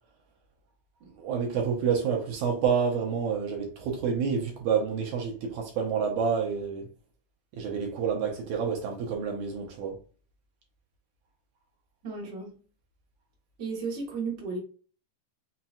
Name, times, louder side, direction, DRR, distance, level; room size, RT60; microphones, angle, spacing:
voice 1, 1.0-6.9 7.5-10.0, right 6 dB, 70° right, 2.0 m, -28 dB
voice 2, 12.0-12.6 13.6-14.6, right 4 dB, 50° right, 1.4 m, -34 dB
5.6 x 2.8 x 2.4 m
omnidirectional pair, 3.9 m